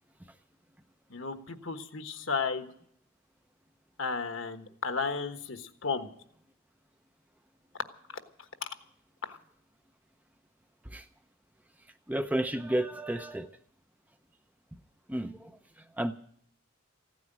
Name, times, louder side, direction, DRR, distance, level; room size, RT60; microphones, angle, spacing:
voice 1, 1.1-2.7 4.0-6.1 8.6-8.7 9.2-9.4, left 5 dB, 65° left, 8 dB, 1.3 m, -34 dB
voice 2, 12.1-13.5 15.1-15.5 16.0-16.1, right 1 dB, 5° right, 9 dB, 0.5 m, -31 dB
15.5 x 9.4 x 9.0 m, 0.65 s
head